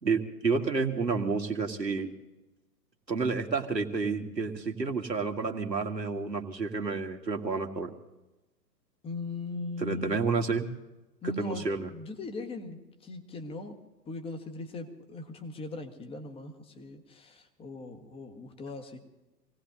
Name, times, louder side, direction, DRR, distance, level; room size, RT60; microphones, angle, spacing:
voice 1, 0.0-2.1 3.1-7.9 9.8-10.7 11.2-11.9, right 4 dB, 85° right, 3 dB, 2.0 m, -30 dB
voice 2, 9.0-10.2 11.2-13.8 14.0-19.0, left 3 dB, 10° left, 5 dB, 1.5 m, -39 dB
27.0 x 18.0 x 2.7 m, 1.0 s
figure-of-eight pair, 115°, 49 cm